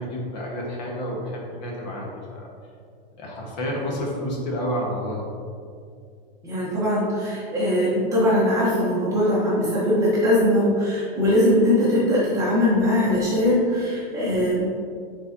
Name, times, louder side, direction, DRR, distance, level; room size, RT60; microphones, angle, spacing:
voice 1, 0.0-2.5 3.2-5.3, equal, 45° left, -2 dB, 1.4 m, -30 dB
voice 2, 6.4-14.7, left 1 dB, 10° right, -8 dB, 0.8 m, -21 dB
8.7 x 4.3 x 2.8 m, 2.3 s
supercardioid pair, 175°, 29 cm